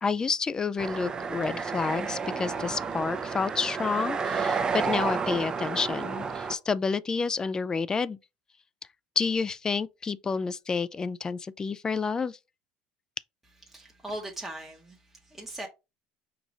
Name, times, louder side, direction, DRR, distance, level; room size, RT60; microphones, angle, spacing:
voice 1, 0.0-8.2 9.2-12.4, left 5 dB, 20° left, 0.3 m, -29 dB
sound 1, 0.8-6.6, right 5 dB, 25° right, 0.7 m, -31 dB
voice 2, 13.7-15.7, right 1 dB, 5° right, 1.0 m, -39 dB
4.7 x 2.5 x 3.9 m
supercardioid pair, 105°, 3 cm